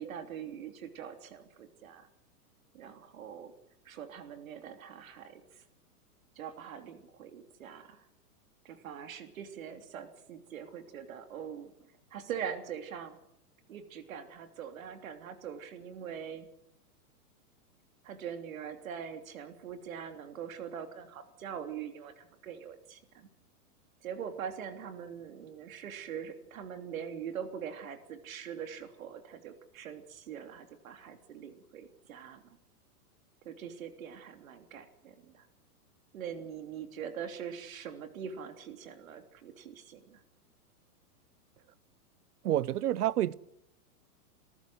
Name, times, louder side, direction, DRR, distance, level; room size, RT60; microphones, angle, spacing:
voice 1, 0.0-2.1 2.7-3.5 3.8-5.6 6.3-8.1 8.6-11.7 12.1-13.2 13.7-16.5 18.0-23.3 24.0-32.4 33.4-35.5 36.1-40.2, right 8 dB, 60° right, 3.3 m, -43 dB
voice 2, 42.4-43.3, right 12 dB, 75° right, 0.9 m, -28 dB
27.0 x 14.5 x 7.9 m
supercardioid pair, 170°, 46 cm